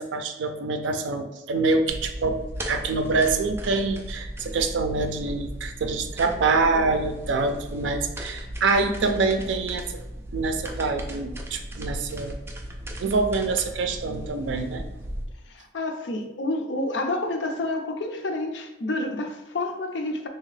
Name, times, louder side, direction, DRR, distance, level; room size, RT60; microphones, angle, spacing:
voice 1, 0.0-2.4 2.7-9.8 10.3-12.4 13.0-14.8, right 3 dB, 90° right, 7 dB, 0.4 m, -25 dB
sound 1, 1.9-15.2, equal, 15° right, 0.3 m, -36 dB
voice 2, 15.5-20.3, left 2 dB, 75° left, 5 dB, 0.5 m, -29 dB
3.6 x 2.8 x 3.2 m, 0.97 s
head